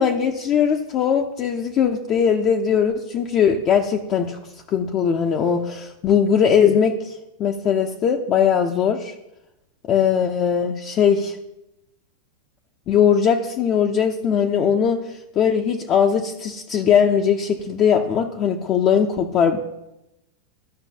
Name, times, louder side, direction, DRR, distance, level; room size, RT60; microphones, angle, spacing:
voice 1, 0.0-4.4 4.7-9.1 9.8-11.4 12.9-19.6, left 7 dB, 40° left, 2 dB, 0.6 m, -20 dB
13.5 x 5.2 x 2.8 m, 0.92 s
hypercardioid pair, 110°, 0 cm